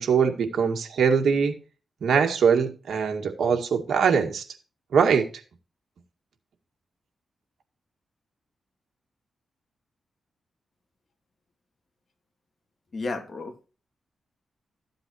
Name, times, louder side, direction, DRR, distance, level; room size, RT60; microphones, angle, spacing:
voice 1, 0.0-1.6 2.0-4.4 4.9-5.3, right 6 dB, 75° right, 2.0 m, -22 dB
voice 2, 12.9-13.7, left 3 dB, 45° left, 2.6 m, -33 dB
14.0 x 7.8 x 3.0 m
cardioid pair, 100°, 0 cm